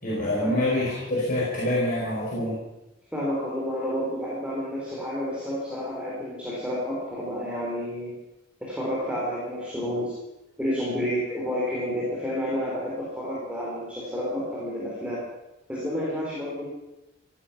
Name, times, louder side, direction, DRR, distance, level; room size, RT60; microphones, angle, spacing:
voice 1, 0.0-2.6, left 1 dB, 45° left, -7 dB, 5.1 m, -26 dB
voice 2, 3.1-8.2 8.6-10.2 10.6-15.3 15.7-16.7, equal, 5° right, -5 dB, 3.9 m, -30 dB
16.0 x 14.0 x 5.9 m, 0.97 s
head